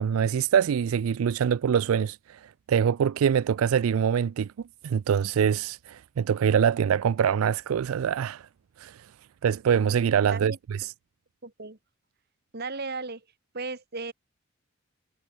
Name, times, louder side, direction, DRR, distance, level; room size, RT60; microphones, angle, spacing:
voice 1, 0.0-4.5 4.8-8.5 8.8-9.1 9.4-10.9, right 8 dB, 85° right, 0.4 m, -24 dB
voice 2, 10.2-10.6 11.4-11.8 12.5-13.2 13.5-14.1, right 3 dB, 50° right, 2.1 m, -35 dB
head